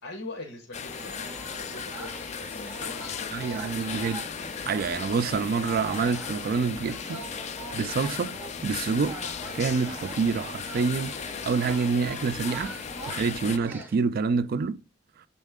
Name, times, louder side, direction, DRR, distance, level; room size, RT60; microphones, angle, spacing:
voice 1, 0.0-3.9, left 2 dB, 90° left, 1.2 m, -43 dB
sound 1, 0.7-13.6, left 6 dB, 35° left, 0.4 m, -36 dB
sound 2, 0.9-13.9, right 3 dB, 10° right, 0.7 m, -44 dB
voice 2, 3.3-4.2 4.7-7.2 7.7-8.4 8.6-9.2 9.5-12.7 13.1-14.8, right 5 dB, 50° right, 0.3 m, -27 dB
7.3 x 4.3 x 3.6 m
head